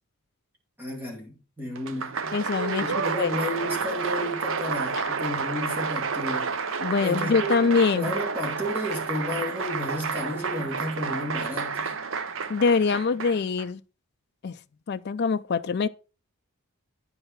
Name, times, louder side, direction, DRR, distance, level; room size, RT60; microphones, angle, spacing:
voice 1, 0.8-2.4 2.8-6.6 7.0-7.5 7.9-11.9, left 1 dB, 10° right, 2.3 m, -32 dB
Applause, 1.7-13.6, right 5 dB, 60° right, 0.7 m, -30 dB
voice 2, 2.3-3.4 6.8-8.1 12.5-13.8 14.4-14.6 14.9-15.9, left 4 dB, 50° left, 0.4 m, -24 dB
9.7 x 4.9 x 4.5 m
head